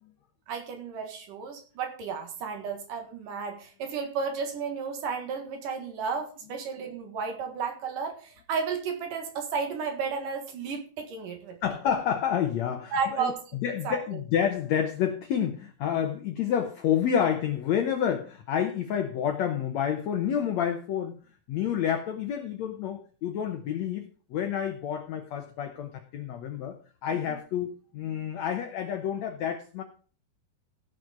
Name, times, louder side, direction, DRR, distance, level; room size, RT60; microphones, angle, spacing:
voice 1, 0.5-11.6 12.9-13.6 13.8-14.2 27.3-27.4, right 5 dB, 65° right, 4 dB, 3.1 m, -33 dB
voice 2, 11.6-21.2 21.5-29.8, left 9 dB, 75° left, 6 dB, 1.6 m, -29 dB
16.0 x 6.1 x 5.1 m, 0.40 s
omnidirectional pair, 4.4 m